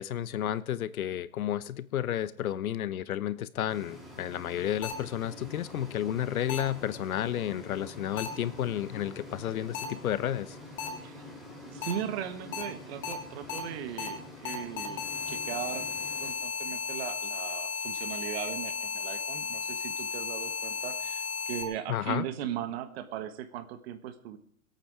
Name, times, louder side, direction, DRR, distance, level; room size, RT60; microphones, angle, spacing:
voice 1, 0.0-10.6 21.9-22.3, left 11 dB, 85° left, 16 dB, 1.0 m, -32 dB
sound 1, 3.7-16.3, left 1 dB, ahead, 3.2 m, -47 dB
sound 2, 4.8-4.9 6.5-6.6 8.2-8.3 9.7-9.8 10.8-10.9 11.8-11.9 12.5-12.6 13.0-13.1 13.5-13.6 14.0-14.1 14.4-21.6, left 6 dB, 25° left, 2.1 m, -34 dB
voice 2, 11.0-11.3 11.6-15.8 16.2-24.4, right 10 dB, 45° right, 9 dB, 1.5 m, -38 dB
21.5 x 8.9 x 4.9 m, 0.62 s
hypercardioid pair, 150°, 42 cm